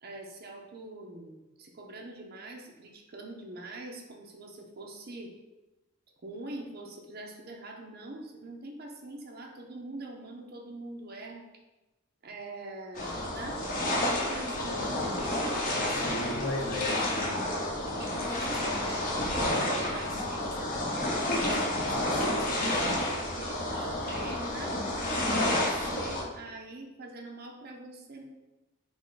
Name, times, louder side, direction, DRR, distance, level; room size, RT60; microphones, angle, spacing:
voice 1, 0.0-5.3 6.2-11.4 12.2-14.7 15.2-15.9 18.0-20.9 21.3-24.8 25.2-28.2, right 2 dB, 50° right, 1 dB, 0.7 m, -44 dB
sound 1, 12.9-26.2, left 1 dB, 45° left, 0.9 m, -30 dB
voice 2, 14.5-15.2 15.7-17.5, left 1 dB, 85° left, 0 dB, 0.9 m, -36 dB
5.8 x 2.2 x 3.9 m, 1.1 s
head